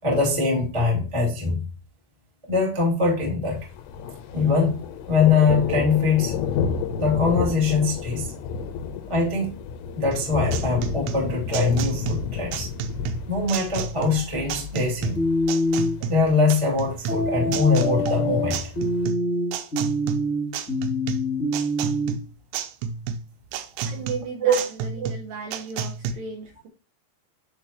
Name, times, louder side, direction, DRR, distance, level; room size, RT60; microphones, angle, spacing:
voice 1, 0.0-1.6 2.5-3.6 4.3-4.8 5.1-6.3 7.0-8.3 9.1-9.5 10.0-12.7 13.3-15.2 16.1-18.6 23.8-24.0 24.4-24.6, left 3 dB, 25° right, -3 dB, 0.6 m, -22 dB
Thunder, 3.5-19.1, left 6 dB, 80° left, 2.6 m, -32 dB
sound 1, 10.1-26.1, right 6 dB, 90° right, 3.2 m, -31 dB
sound 2, 15.2-16.0 17.1-22.1, left 1 dB, 60° left, 1.1 m, -25 dB
voice 2, 23.9-26.7, right 4 dB, 70° right, 1 dB, 2.3 m, -35 dB
10.5 x 3.9 x 2.8 m, 0.36 s
omnidirectional pair, 5.4 m